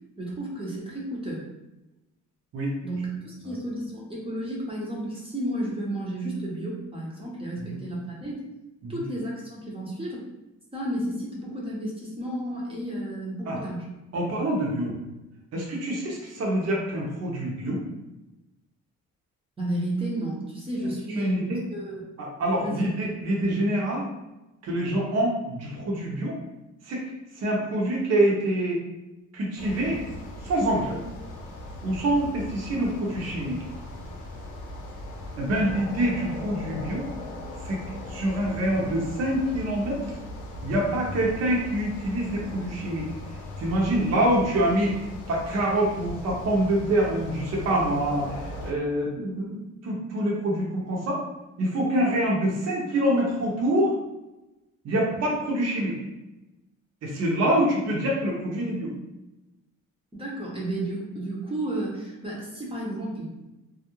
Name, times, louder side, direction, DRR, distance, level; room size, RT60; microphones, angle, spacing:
voice 1, 0.2-1.4 2.8-8.4 8.9-10.3 10.7-13.9 19.6-22.0 22.6-23.1 35.5-35.6 60.1-63.5, right 1 dB, 15° right, -4 dB, 0.6 m, -32 dB
voice 2, 14.1-14.9 15.5-17.8 21.2-21.6 22.2-24.1 24.6-26.4 26.8-27.0 27.3-28.8 29.3-30.0 30.4-31.0 31.8-33.6 35.4-37.1 37.6-37.8 38.1-40.2 40.6-43.1 43.6-51.2 51.6-53.9 54.8-56.0 57.0-58.9, right 1 dB, 55° right, -3 dB, 0.7 m, -26 dB
sound 1, 29.6-48.7, left 1 dB, 75° left, 0.7 m, -39 dB
2.3 x 2.0 x 2.9 m, 0.99 s
cardioid pair, 90°, 31 cm